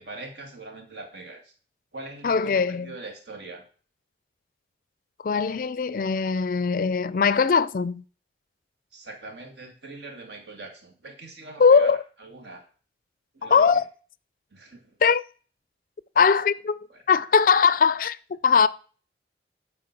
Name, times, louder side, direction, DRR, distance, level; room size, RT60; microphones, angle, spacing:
voice 1, 0.0-1.5 1.9-3.7 8.9-12.7 13.3-13.8 14.5-15.0 16.9-17.0, right 2 dB, 70° right, 2.1 m, -42 dB
voice 2, 2.2-2.9 5.2-8.0 11.6-12.0 13.4-13.8 15.0-15.2 16.2-16.8 17.1-18.2 18.4-18.7, left 5 dB, 45° left, 0.4 m, -20 dB
12.5 x 4.4 x 6.0 m
head